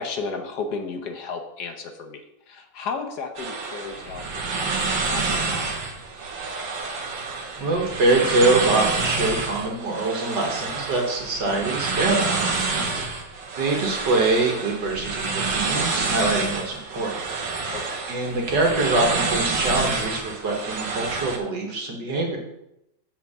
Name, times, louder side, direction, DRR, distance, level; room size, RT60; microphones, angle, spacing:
voice 1, 0.0-6.1 12.8-13.1 17.7-18.1, left 4 dB, 65° left, 5 dB, 1.4 m, -34 dB
sound 1, 3.4-21.4, right 4 dB, 85° right, 1.9 m, -28 dB
voice 2, 7.6-12.4 13.6-17.5 18.1-22.4, right 2 dB, 70° right, 0 dB, 2.3 m, -24 dB
7.4 x 4.5 x 7.0 m, 0.85 s
omnidirectional pair, 2.0 m